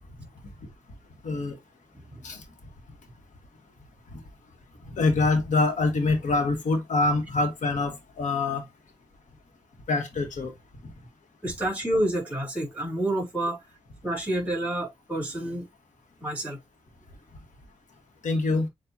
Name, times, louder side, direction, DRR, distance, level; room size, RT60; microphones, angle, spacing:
voice 1, 1.2-1.6 2.2-2.4 4.9-8.6 9.9-10.5 18.2-18.7, left 3 dB, 75° left, 1.4 m, -25 dB
voice 2, 11.4-13.6 14.0-15.7 16.2-16.6, right 1 dB, 10° right, 3.1 m, -28 dB
7.1 x 2.6 x 2.8 m
wide cardioid pair, 125°, 13 cm